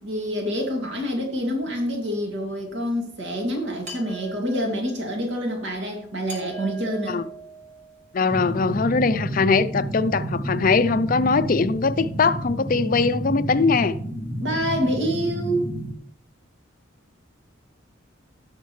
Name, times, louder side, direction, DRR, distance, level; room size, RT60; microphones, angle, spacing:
voice 1, 0.0-7.2 14.4-15.8, equal, 70° right, 2.3 m, -27 dB
sound 1, 3.8-4.9 6.3-8.2, right 3 dB, 40° right, 5.1 m, -40 dB
voice 2, 8.1-14.0, left 4 dB, 45° left, 0.5 m, -21 dB
sound 2, 8.3-15.9, right 1 dB, 10° right, 0.9 m, -30 dB
18.0 x 6.5 x 3.2 m
head